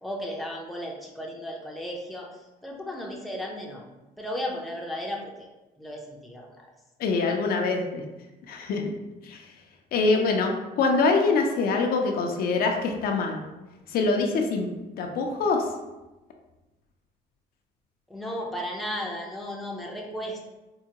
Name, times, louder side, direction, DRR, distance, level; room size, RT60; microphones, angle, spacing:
voice 1, 0.0-2.3 2.6-3.8 4.2-5.5 5.8-6.7 18.1-20.5, equal, ahead, -2 dB, 0.6 m, -35 dB
voice 2, 7.0-8.0 8.5-9.0 9.2-9.4 9.9-13.4 13.9-14.7 15.0-15.7, left 3 dB, 60° left, 2 dB, 0.5 m, -24 dB
4.5 x 2.1 x 2.8 m, 1.1 s
cardioid pair, 110°, 17 cm